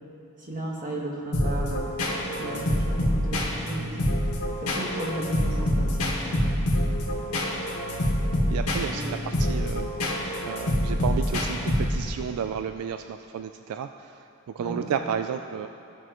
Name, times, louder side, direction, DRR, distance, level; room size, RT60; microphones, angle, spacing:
voice 1, 0.4-1.8 2.3-4.1 4.6-6.6 8.9-9.3 14.6-14.9, right 1 dB, 35° right, -3 dB, 1.5 m, -35 dB
sound 1, 1.3-12.2, left 1 dB, 85° left, 1.6 m, -26 dB
voice 2, 8.5-9.9 10.4-15.7, right 7 dB, 80° right, 7 dB, 0.3 m, -32 dB
15.0 x 6.2 x 3.0 m, 2.8 s
head